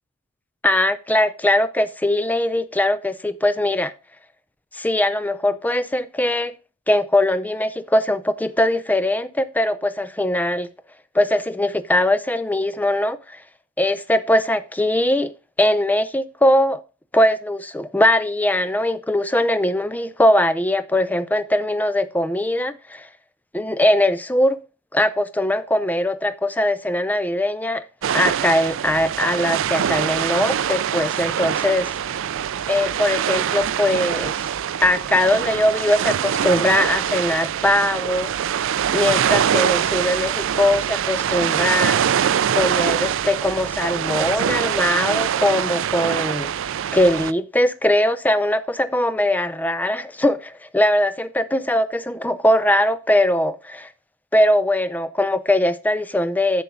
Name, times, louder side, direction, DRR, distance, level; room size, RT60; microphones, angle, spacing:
voice 1, 0.6-3.9 4.7-6.5 6.9-10.7 11.1-13.4 13.8-15.3 15.6-16.8 17.1-23.1 23.5-24.6 24.9-27.8 28.1-32.2 32.7-34.5 34.8-38.3 38.9-42.3 42.6-46.5 46.9-53.9 54.3-56.6, left 1 dB, 5° left, 0.4 m, -21 dB
sound 1, 28.0-47.3, right 9 dB, 60° right, 0.4 m, -23 dB
10.0 x 6.9 x 3.8 m
head